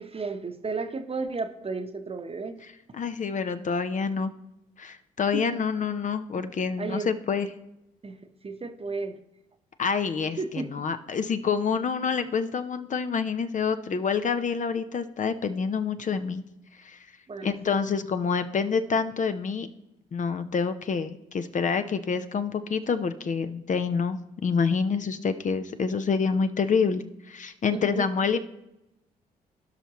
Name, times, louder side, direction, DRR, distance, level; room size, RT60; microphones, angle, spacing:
voice 1, 0.0-2.6 5.3-5.4 6.8-7.1 8.0-9.2 10.4-10.7 17.3-17.5 17.9-18.0 27.7-28.1, right 4 dB, 30° right, 8 dB, 1.0 m, -33 dB
voice 2, 3.0-4.3 4.8-7.5 9.8-16.4 16.8-17.0 17.4-19.7 20.1-28.4, left 5 dB, 40° left, 9 dB, 0.7 m, -27 dB
16.5 x 5.6 x 3.1 m, 0.89 s
hypercardioid pair, 45°, 19 cm